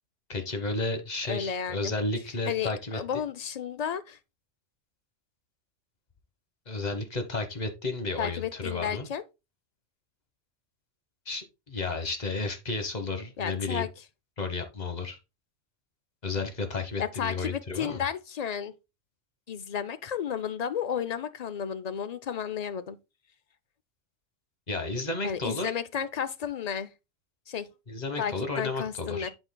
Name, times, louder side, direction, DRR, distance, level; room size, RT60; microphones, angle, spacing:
voice 1, 0.3-3.0 6.7-9.1 11.2-13.9 14.4-15.2 16.2-18.0 24.7-25.7 27.9-29.3, left 3 dB, 35° left, 1.3 m, -32 dB
voice 2, 1.3-1.9 2.5-4.2 8.2-9.2 13.4-13.9 17.0-18.7 19.5-23.0 25.2-26.9 27.5-27.7 28.2-29.3, left 8 dB, 60° left, 0.4 m, -32 dB
11.5 x 4.4 x 2.2 m
omnidirectional pair, 1.3 m